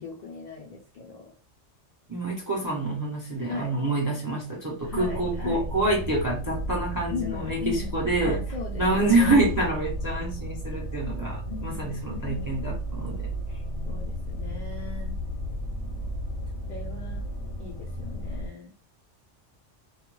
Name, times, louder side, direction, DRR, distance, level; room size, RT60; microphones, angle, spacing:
voice 1, 0.0-1.3 3.4-3.7 4.9-5.7 7.1-9.5 11.2-12.7 13.9-15.2 16.6-17.3 17.6-18.7, left 5 dB, 55° left, -1 dB, 0.5 m, -38 dB
voice 2, 2.1-8.4 8.8-13.3, right 2 dB, 25° right, -2 dB, 0.4 m, -27 dB
sound 1, 4.8-18.5, equal, 75° left, 0.9 m, -34 dB
2.3 x 2.1 x 3.0 m, 0.34 s
omnidirectional pair, 1.2 m